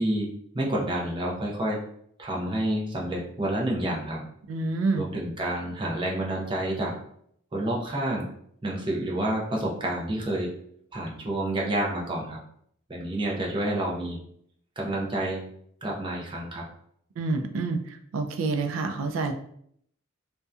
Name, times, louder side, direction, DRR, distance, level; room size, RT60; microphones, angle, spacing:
voice 1, 0.0-1.8 2.2-4.3 4.9-7.0 7.5-8.2 8.6-10.5 10.9-12.4 12.9-14.2 14.8-15.4 15.8-16.7, right 1 dB, 25° right, -3 dB, 0.5 m, -29 dB
voice 2, 4.5-5.0 17.2-19.3, right 3 dB, 80° right, 7 dB, 0.3 m, -28 dB
2.6 x 2.1 x 2.3 m, 0.68 s
head